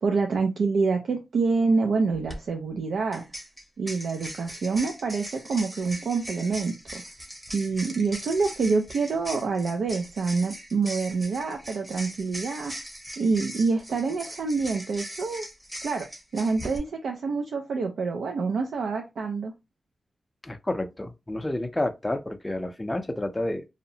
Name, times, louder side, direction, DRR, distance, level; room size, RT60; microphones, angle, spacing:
voice 1, 0.0-3.2 3.8-7.0 7.5-12.7 13.2-15.4 15.8-16.1 16.3-19.5, right 4 dB, 85° right, 0.4 m, -26 dB
sound 1, 2.1-2.4 3.1-16.8, equal, 15° right, 0.8 m, -40 dB
voice 2, 20.4-23.6, left 1 dB, 15° left, 0.4 m, -30 dB
2.7 x 2.0 x 2.6 m
cardioid pair, 80°, 0 cm